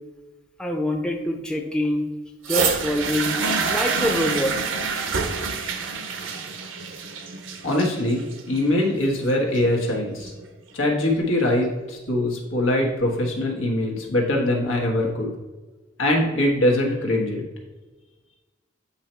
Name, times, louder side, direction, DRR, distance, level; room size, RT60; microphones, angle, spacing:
voice 1, 0.6-2.1 2.5-4.6, left 1 dB, 5° left, 2 dB, 0.5 m, -25 dB
sound 1, 2.4-10.4 11.3-11.4, right 5 dB, 75° right, 0.7 m, -27 dB
voice 2, 7.6-10.3 10.7-15.3 16.0-17.4, left 1 dB, 90° left, 0 dB, 1.4 m, -22 dB
8.2 x 2.8 x 4.4 m, 1.2 s
head